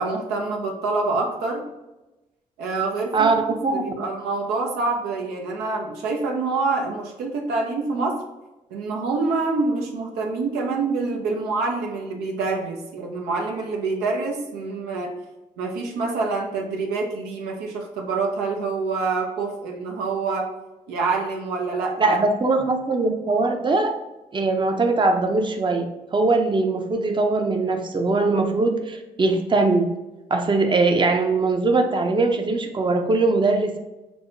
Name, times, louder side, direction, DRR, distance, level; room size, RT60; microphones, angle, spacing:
voice 1, 0.0-1.7 2.6-3.4 3.7-8.2 8.7-15.1 15.6-20.5 20.9-22.2, right 3 dB, 85° right, 1 dB, 0.5 m, -26 dB
voice 2, 3.6-3.9 22.0-24.0 24.3-25.9 26.1-29.9 30.3-33.8, right 3 dB, 30° right, 5 dB, 0.6 m, -21 dB
4.6 x 2.1 x 2.6 m, 1.0 s
hypercardioid pair, 45°, 16 cm